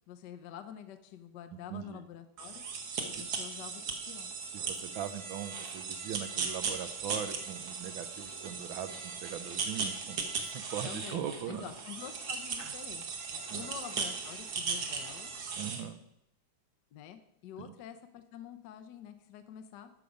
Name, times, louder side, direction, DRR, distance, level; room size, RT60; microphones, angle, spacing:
voice 1, 0.1-2.6 3.1-4.3 10.8-11.2 11.5-13.0 13.3-15.3 16.9-19.9, left 10 dB, 65° left, 8 dB, 1.1 m, -47 dB
voice 2, 1.7-2.0 4.5-11.7 12.6-12.7 13.5-13.7 15.5-16.0 17.6-17.7, right 9 dB, 75° right, 10 dB, 1.4 m, -40 dB
sound 1, 2.4-15.8, right 5 dB, 55° right, 1.5 m, -38 dB
13.0 x 5.1 x 5.2 m, 0.80 s
omnidirectional pair, 2.3 m